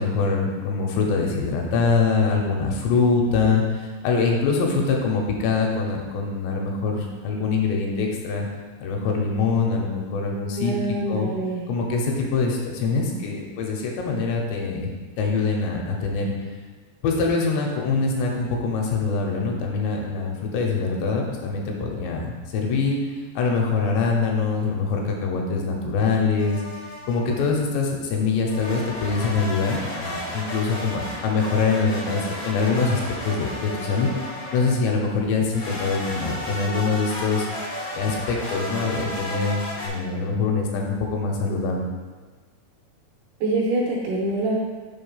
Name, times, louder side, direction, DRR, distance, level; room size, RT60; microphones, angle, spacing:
voice 1, 0.0-8.5 8.8-10.7 11.1-11.3 11.7-14.9 15.2-16.3 17.0-22.3 22.5-23.0 23.4-26.6 27.1-37.5 37.9-41.9, left 4 dB, 80° left, 0 dB, 3.0 m, -24 dB
voice 2, 10.6-11.7 43.4-44.6, right 2 dB, 80° right, -3 dB, 2.5 m, -25 dB
sound 1, 26.4-27.4 28.5-34.9 35.5-39.9, left 1 dB, 55° left, 1.1 m, -33 dB
6.5 x 3.8 x 5.6 m, 1.4 s
omnidirectional pair, 5.1 m